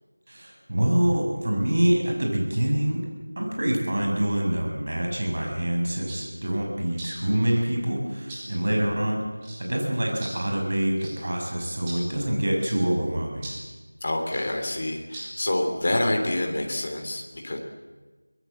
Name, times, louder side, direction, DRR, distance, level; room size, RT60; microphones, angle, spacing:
voice 1, 0.3-3.0 3.4-9.2 9.6-13.5, right 1 dB, 40° right, 1 dB, 6.7 m, -25 dB
sound 1, 6.1-6.2 7.0-7.5 8.3-8.5 9.4-9.6 10.2-10.4 11.0-11.2 11.9-12.0 12.6-12.8 13.4-13.7 14.3-14.5 15.1-15.3, right 1 dB, 10° right, 2.7 m, -39 dB
voice 2, 14.0-17.6, left 1 dB, 30° left, 2 dB, 3.3 m, -27 dB
24.0 x 21.0 x 8.0 m, 1.3 s
figure-of-eight pair, 175°, 0 cm